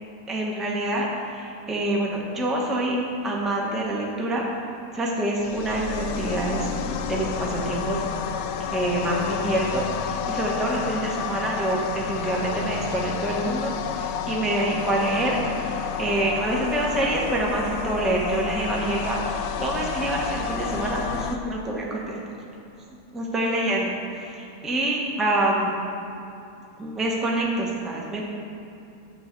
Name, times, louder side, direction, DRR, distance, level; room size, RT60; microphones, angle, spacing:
voice 1, 0.3-3.0 3.2-4.4 4.9-8.0 8.7-22.2 23.1-25.7 26.8-28.2, right 1 dB, ahead, -3 dB, 0.9 m, -26 dB
sound 1, 5.4-21.4, left 7 dB, 70° left, 0.8 m, -30 dB
9.1 x 7.7 x 5.3 m, 2.7 s
omnidirectional pair, 1.8 m